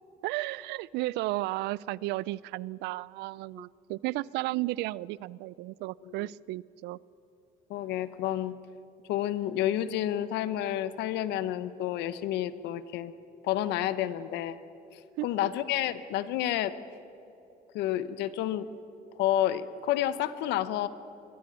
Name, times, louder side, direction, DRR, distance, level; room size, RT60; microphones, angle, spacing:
voice 1, 0.2-7.0 15.2-15.5, right 18 dB, 85° right, 23 dB, 0.4 m, -34 dB
voice 2, 7.7-8.6 9.1-13.1 13.4-14.6 15.2-16.7 17.7-18.7 19.2-20.9, left 12 dB, 85° left, 15 dB, 0.9 m, -30 dB
22.0 x 15.0 x 8.8 m, 2.9 s
cardioid pair, 110°, 17 cm